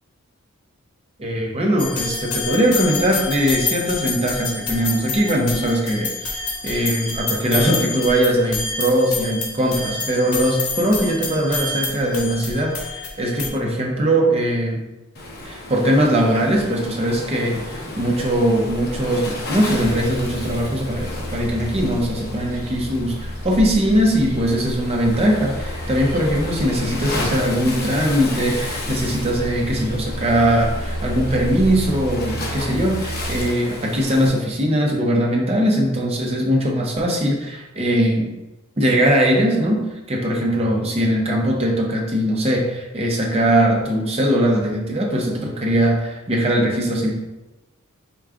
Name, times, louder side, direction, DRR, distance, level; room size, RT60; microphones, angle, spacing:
voice 1, 1.2-14.8 15.4-38.3 38.8-47.1, equal, 30° right, -1 dB, 0.7 m, -20 dB
sound 1, 1.8-13.5, left 4 dB, 90° left, 0.8 m, -28 dB
Waves surf, 15.1-34.3, left 1 dB, 50° left, 0.7 m, -32 dB
sound 2, 19.3-33.4, equal, 75° right, 0.6 m, -32 dB
4.8 x 2.3 x 3.6 m, 1.0 s
head